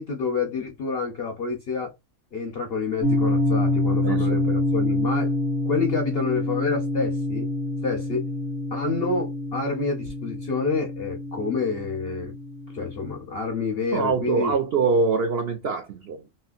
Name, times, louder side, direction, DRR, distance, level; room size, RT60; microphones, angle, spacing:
voice 1, 0.0-1.9 2.3-5.3 5.7-7.5 7.8-8.3 8.7-12.3 12.7-14.5, left 4 dB, 60° left, 0.6 m, -28 dB
sound 1, 3.0-13.2, left 1 dB, 45° right, 1.2 m, -26 dB
voice 2, 4.0-4.5 13.9-16.2, right 4 dB, 75° right, 0.5 m, -24 dB
3.2 x 2.8 x 2.4 m
omnidirectional pair, 1.7 m